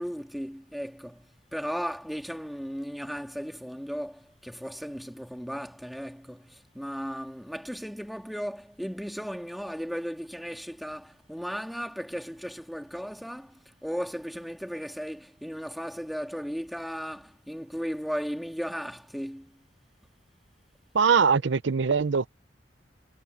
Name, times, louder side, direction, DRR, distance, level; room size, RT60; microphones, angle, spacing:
voice 1, 0.0-19.6, equal, ahead, 2.2 m, -36 dB
voice 2, 20.9-22.3, right 5 dB, 80° right, 0.6 m, -22 dB
head